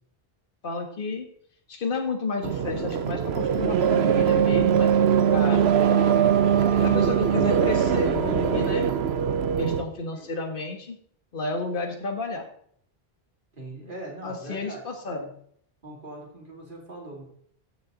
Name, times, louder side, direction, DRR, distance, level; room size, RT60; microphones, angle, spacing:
voice 1, 0.6-1.3 1.7-5.6 6.8-8.9 9.6-11.0 11.3-12.4 14.2-15.3, left 3 dB, 55° left, 4 dB, 1.6 m, -31 dB
sound 1, 2.4-9.8, right 8 dB, 85° right, 1.0 m, -21 dB
voice 2, 13.5-15.1 15.8-17.2, right 2 dB, 55° right, -2 dB, 3.3 m, -41 dB
14.0 x 6.9 x 4.0 m, 0.64 s
omnidirectional pair, 1.0 m